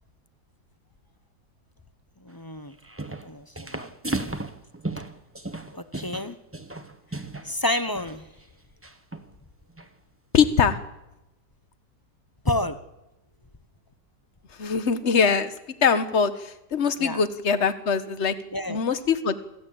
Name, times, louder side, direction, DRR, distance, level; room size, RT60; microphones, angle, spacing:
voice 1, 2.2-2.7 3.2-3.9 5.7-6.4 7.4-8.3 12.4-12.8 17.0-17.2 18.5-18.8, left 1 dB, 15° left, 10 dB, 0.7 m, -29 dB
sound 1, 2.7-3.3 3.6-7.5 7.9-8.2 8.8-9.3 9.8-9.9 10.3-10.7, right 2 dB, 10° right, 1.1 m, -35 dB
voice 2, 10.3-10.8 14.6-15.5 15.8-18.3 18.7-19.4, left 6 dB, 40° left, 11 dB, 1.5 m, -22 dB
26.0 x 16.5 x 8.8 m, 0.94 s
omnidirectional pair, 2.0 m